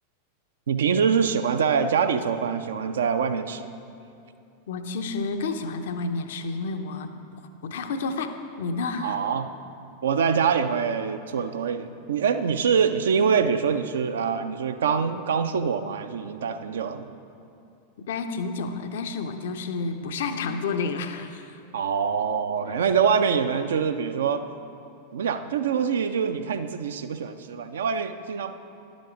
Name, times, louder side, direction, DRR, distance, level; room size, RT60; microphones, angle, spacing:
voice 1, 0.7-3.7 9.0-9.5 10.0-17.1 20.0-20.2 21.7-24.4 25.1-28.5, right 6 dB, 65° right, 9 dB, 0.4 m, -24 dB
voice 2, 4.7-7.1 7.6-9.2 18.1-21.6, left 4 dB, 60° left, 7 dB, 0.5 m, -30 dB
10.5 x 5.2 x 4.9 m, 2.6 s
figure-of-eight pair, 90°, 0 cm